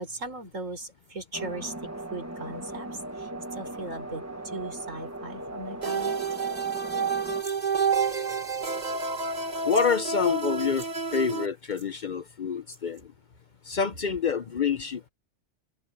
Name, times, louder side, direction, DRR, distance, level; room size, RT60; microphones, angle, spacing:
voice 1, 0.0-1.7 2.1-6.2, right 2 dB, 85° right, 5.1 m, -38 dB
sound 1, 1.3-7.4, right 1 dB, 15° right, 1.3 m, -38 dB
sound 2, 5.8-11.5, right 5 dB, 35° right, 1.5 m, -29 dB
sound 3, 7.3-7.6 8.5-8.9 9.1-9.2 9.6-9.9 10.6-10.9 11.7-11.9 12.7-13.0, right 2 dB, 65° right, 4.9 m, -47 dB
voice 2, 9.7-13.0 13.7-15.1, left 6 dB, 50° left, 0.6 m, -27 dB
omnidirectional pair, 1.3 m